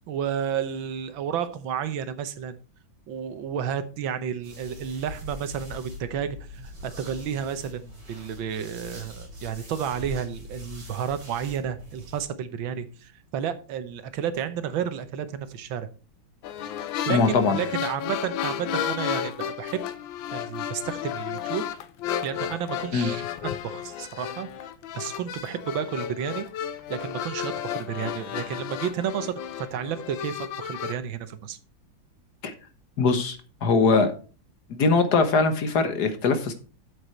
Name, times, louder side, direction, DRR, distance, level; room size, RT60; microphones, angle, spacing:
voice 1, 0.1-2.6 3.1-15.9 17.1-19.8 20.3-21.7 22.2-23.3 23.6-24.5 24.9-26.5 26.9-29.4 29.7-31.6, right 8 dB, 85° right, 11 dB, 1.7 m, -31 dB
sound 1, 4.4-12.2, left 1 dB, 45° right, 4.3 m, -42 dB
sound 2, 16.4-30.9, left 10 dB, 80° left, 1.5 m, -33 dB
voice 2, 17.1-17.6 22.9-23.1 32.4-32.5 33.0-34.1 34.7-36.5, left 4 dB, 60° left, 8 dB, 1.6 m, -21 dB
8.1 x 8.0 x 4.2 m, 0.36 s
omnidirectional pair, 2.1 m